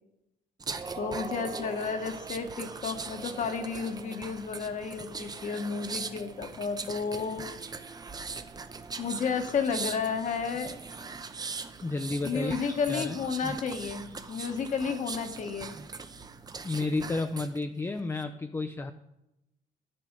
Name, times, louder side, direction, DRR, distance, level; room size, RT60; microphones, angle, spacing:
sound 1, 0.6-17.6 18.0-18.2, right 4 dB, 25° right, 0.7 m, -40 dB
voice 1, 1.0-7.4 9.0-10.7 12.2-15.7, left 5 dB, 45° left, 6 dB, 1.3 m, -32 dB
voice 2, 11.8-13.2 16.6-18.9, left 3 dB, 15° left, 8 dB, 0.5 m, -32 dB
11.0 x 7.7 x 5.3 m, 0.89 s
cardioid pair, 110°, 17 cm